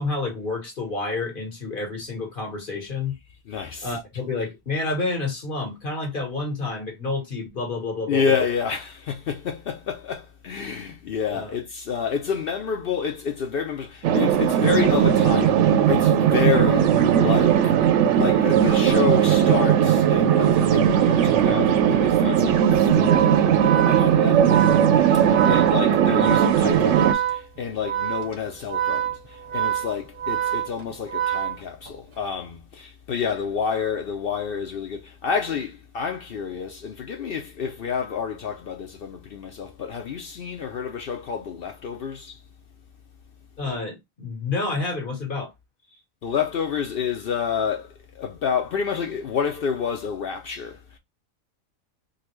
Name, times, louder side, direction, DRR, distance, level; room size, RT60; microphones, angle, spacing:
voice 1, 0.0-3.1 3.8-8.4 11.2-11.5 43.6-45.5, left 3 dB, 40° left, 1.3 m, -29 dB
voice 2, 3.5-3.9 8.1-17.7 18.1-23.4 23.8-24.5 25.4-42.4 46.2-51.0, left 6 dB, 65° left, 0.5 m, -29 dB
sound 1, 14.0-27.1, right 9 dB, 65° right, 0.8 m, -18 dB
Organ, 22.9-32.1, right 10 dB, 30° right, 0.5 m, -27 dB
3.8 x 2.2 x 3.0 m
omnidirectional pair, 1.4 m